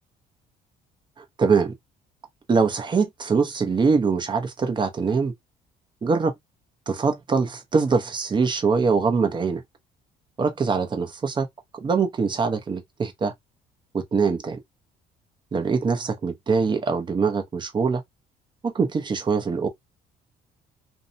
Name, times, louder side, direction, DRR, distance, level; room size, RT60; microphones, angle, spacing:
voice 1, 1.2-1.7 2.5-5.3 6.0-6.3 6.9-9.6 10.4-11.5 11.7-13.3 13.9-14.6 15.5-18.0 18.6-19.7, right 5 dB, 25° right, 0.7 m, -23 dB
2.7 x 2.1 x 2.5 m
cardioid pair, 110°, 17 cm